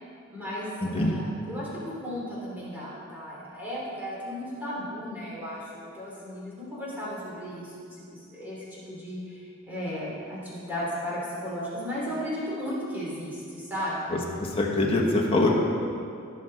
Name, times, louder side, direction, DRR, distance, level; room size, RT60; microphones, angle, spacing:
voice 1, 0.3-14.0, equal, 10° right, -8 dB, 2.9 m, -35 dB
voice 2, 14.6-15.5, left 2 dB, 25° left, -2 dB, 1.3 m, -23 dB
16.5 x 6.4 x 3.8 m, 2.4 s
head